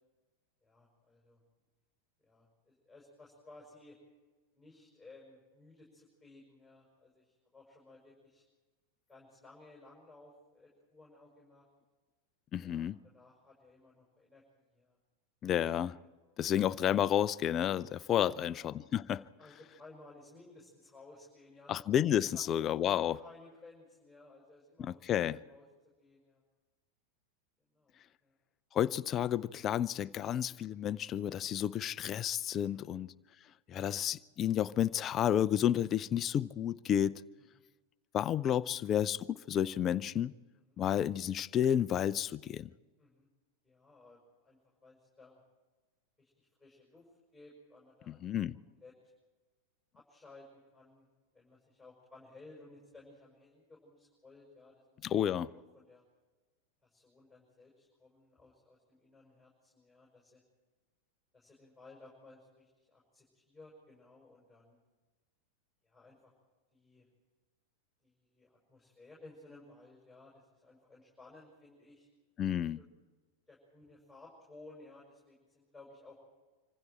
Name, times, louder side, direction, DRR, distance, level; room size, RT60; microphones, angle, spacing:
voice 1, 0.6-1.4 2.2-4.0 4.5-8.4 9.1-11.7 12.6-14.4 14.7-15.0 16.0-16.1 18.3-18.7 19.4-25.6 26.0-26.4 27.7-28.0 28.2-28.4 32.7-33.0 37.5-37.6 40.5-40.8 43.0-43.3 43.6-45.4 46.2-47.1 47.3-49.1 49.9-51.1 51.3-55.1 55.3-56.0 56.8-60.4 61.3-64.8 65.8-66.3 66.7-67.1 68.0-72.1 72.8-72.9 73.5-76.2, left 2 dB, ahead, 5.7 m, -58 dB
voice 2, 12.5-13.0 15.4-16.0 16.4-19.2 21.7-23.2 24.8-25.4 28.7-33.1 33.7-37.2 38.1-40.3 40.8-42.7 48.1-48.6 55.0-55.5 72.4-72.8, left 10 dB, 30° left, 0.6 m, -31 dB
26.0 x 26.0 x 4.5 m
figure-of-eight pair, 90°, 0 cm